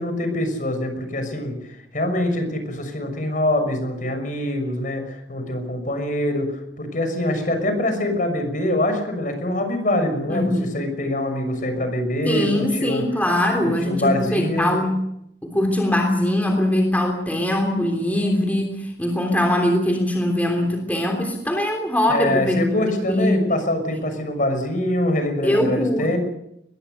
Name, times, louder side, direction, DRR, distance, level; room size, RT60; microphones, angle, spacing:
voice 1, 0.0-1.5 1.9-13.0 13.6-14.8 22.1-26.2, left 1 dB, 50° left, 7 dB, 6.3 m, -24 dB
voice 2, 10.3-10.7 12.3-15.0 15.4-23.4 25.4-26.2, left 1 dB, 10° left, 2 dB, 3.3 m, -22 dB
23.0 x 21.5 x 6.7 m, 0.78 s
head